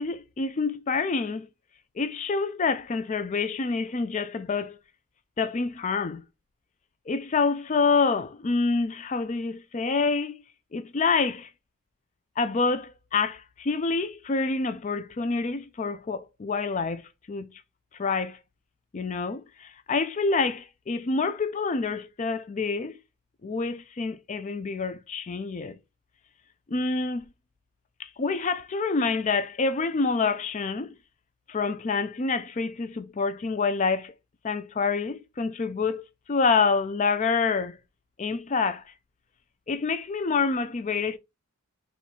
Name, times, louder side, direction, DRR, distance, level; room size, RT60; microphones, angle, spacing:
voice 1, 0.0-1.5 2.0-4.8 5.4-6.2 7.1-10.4 10.7-11.5 12.4-17.5 18.0-18.4 18.9-22.9 23.4-25.8 26.7-27.2 28.0-30.9 31.5-34.1 34.4-36.0 36.3-37.8 38.2-38.8 39.7-41.2, left 4 dB, 30° left, 0.4 m, -27 dB
4.3 x 2.3 x 4.1 m
head